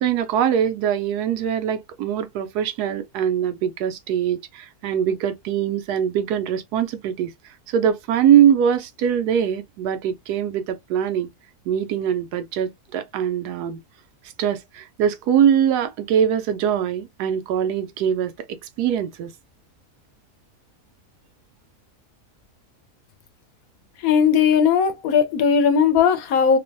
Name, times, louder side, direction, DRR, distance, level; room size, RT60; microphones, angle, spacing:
voice 1, 0.0-7.3 7.7-11.3 11.7-13.8 14.4-18.3 18.8-19.3, right 9 dB, 90° right, 1.1 m, -22 dB
voice 2, 24.0-26.6, left 7 dB, 70° left, 1.0 m, -18 dB
3.0 x 2.1 x 2.5 m
omnidirectional pair, 1.6 m